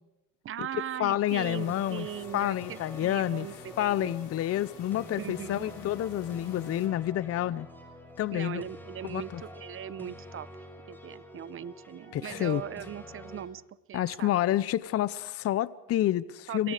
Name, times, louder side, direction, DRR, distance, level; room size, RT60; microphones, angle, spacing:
voice 1, 0.4-4.2 5.2-5.7 8.3-10.5 10.9-13.6 13.9-14.3 16.5-16.7, right 10 dB, 30° right, 19 dB, 0.9 m, -39 dB
voice 2, 1.0-2.1 2.3-3.5 3.8-7.7 8.2-8.6 9.1-9.4 12.1-12.6 13.9-16.7, left 13 dB, 35° left, 18 dB, 0.7 m, -29 dB
sound 1, 1.3-6.9, left 8 dB, 75° left, 5.7 m, -50 dB
sound 2, 1.4-13.5, left 1 dB, 5° left, 5.8 m, -47 dB
28.0 x 23.5 x 5.0 m, 0.96 s
cardioid pair, 130°, 40 cm